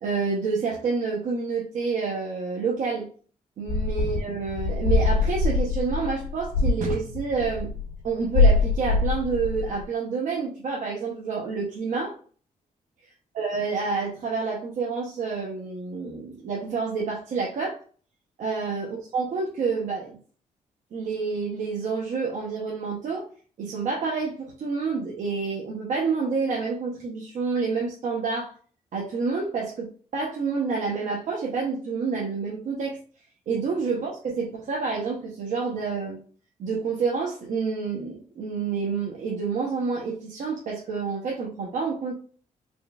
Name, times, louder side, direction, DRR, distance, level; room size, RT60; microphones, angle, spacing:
voice 1, 0.0-3.1 3.6-7.7 8.0-12.1 13.3-17.8 18.4-20.2 20.9-23.3 23.6-28.5 28.9-33.0 33.5-36.2 36.6-42.1, right 4 dB, 65° right, -2 dB, 0.9 m, -28 dB
sound 1, 3.7-8.1 8.3-9.8, left 3 dB, 85° left, 1.5 m, -24 dB
4.4 x 3.3 x 2.3 m, 0.42 s
wide cardioid pair, 145°, 14 cm